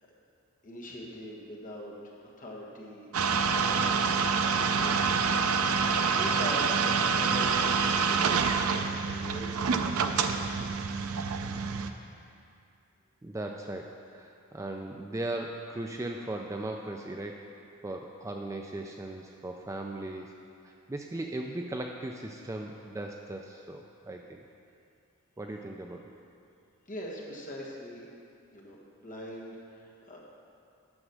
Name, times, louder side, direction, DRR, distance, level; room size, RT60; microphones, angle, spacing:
voice 1, 0.6-3.1 3.5-4.1 4.5-10.7 26.8-28.0 28.5-30.2, equal, 35° left, -3 dB, 1.5 m, -43 dB
sound 1, 3.1-11.9, right 5 dB, 75° right, 0.5 m, -27 dB
voice 2, 13.2-17.4 17.8-20.3 20.6-24.4 25.4-26.1, right 2 dB, 15° right, 2 dB, 0.3 m, -38 dB
9.8 x 6.2 x 6.2 m, 2.5 s
head